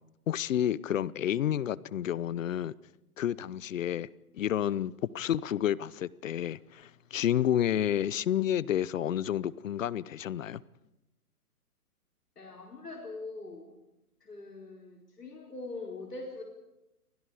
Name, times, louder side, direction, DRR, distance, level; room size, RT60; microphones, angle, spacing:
voice 1, 0.3-2.7 3.2-4.1 4.3-10.6, left 10 dB, 55° left, 0.8 m, -30 dB
voice 2, 12.4-13.8 14.2-16.4, left 3 dB, 90° left, 4.7 m, -42 dB
30.0 x 24.5 x 4.9 m
hypercardioid pair, 130°, 46 cm